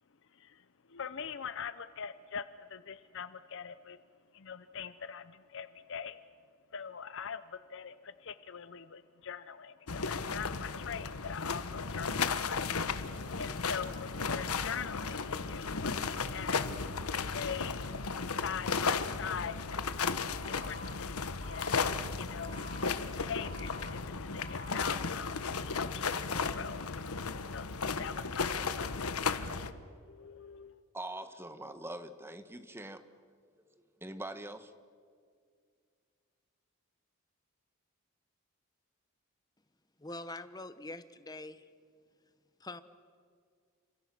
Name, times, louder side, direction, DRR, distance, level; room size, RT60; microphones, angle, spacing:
voice 1, 0.3-0.6 0.9-4.0 4.3-6.2 6.7-12.7 13.4-16.6 17.1-17.9 18.4-19.7 20.0-21.8 22.1-22.5 22.8-26.8 27.5-27.7 28.0-29.1 29.5-29.7 30.1-30.8, left 7 dB, 60° left, 13 dB, 0.7 m, -42 dB
sound 1, 9.9-29.7, left 5 dB, 85° left, 1.2 m, -35 dB
Alarm, 20.4-20.9 21.4-21.9 22.4-22.9 23.4-23.9 24.4-24.9, right 2 dB, 70° right, 4.9 m, -50 dB
voice 2, 30.9-33.0 34.0-34.7, right 1 dB, 10° right, 10 dB, 1.3 m, -43 dB
voice 3, 40.0-41.7 42.6-42.8, left 2 dB, 20° left, 12 dB, 1.1 m, -44 dB
30.0 x 26.5 x 6.2 m, 2.1 s
head